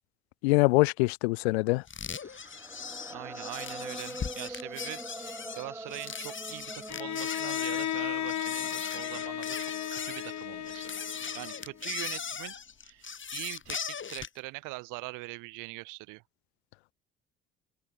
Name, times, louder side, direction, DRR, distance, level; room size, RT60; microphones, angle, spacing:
voice 1, 0.4-1.8, left 24 dB, 80° left, 0.5 m, -24 dB
sound 1, 1.9-14.4, left 6 dB, 35° left, 2.3 m, -39 dB
sound 2, 2.2-12.3, right 1 dB, 10° right, 6.8 m, -45 dB
voice 2, 3.1-12.5 12.8-16.2, right 24 dB, 75° right, 5.8 m, -43 dB
Bowed string instrument, 6.9-11.9, left 11 dB, 60° left, 6.5 m, -35 dB
open air
hypercardioid pair, 50°, 32 cm